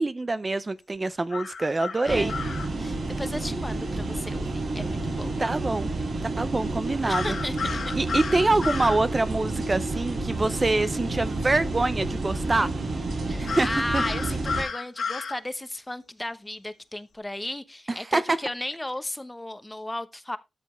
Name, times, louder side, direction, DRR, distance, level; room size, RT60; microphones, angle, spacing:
voice 1, 0.0-2.3 5.4-5.9 6.2-7.3 8.0-12.7 13.4-13.7 13.9-14.0 17.9-18.4, right 2 dB, 30° right, 0.6 m, -25 dB
sound 1, 1.3-2.7 7.1-9.0 13.5-15.4, left 5 dB, 75° left, 2.2 m, -32 dB
voice 2, 2.0-2.3 2.8-5.5 7.1-7.9 13.3-20.4, left 1 dB, 15° left, 0.9 m, -35 dB
sound 2, 2.1-14.6, right 2 dB, 70° right, 4.5 m, -30 dB
13.0 x 6.7 x 3.2 m
wide cardioid pair, 100°, 0 cm